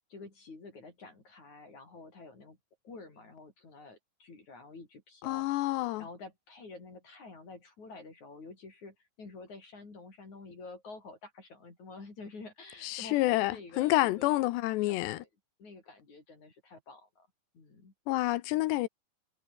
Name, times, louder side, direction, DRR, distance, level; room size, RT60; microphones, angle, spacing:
voice 1, 0.1-2.6 2.8-5.7 6.0-14.5 14.8-15.3 15.6-17.3 17.5-17.9, left 3 dB, 40° left, 6.7 m, -49 dB
voice 2, 5.2-6.1 12.8-15.2 18.1-18.9, left 18 dB, 80° left, 2.7 m, -28 dB
omnidirectional pair, 5.4 m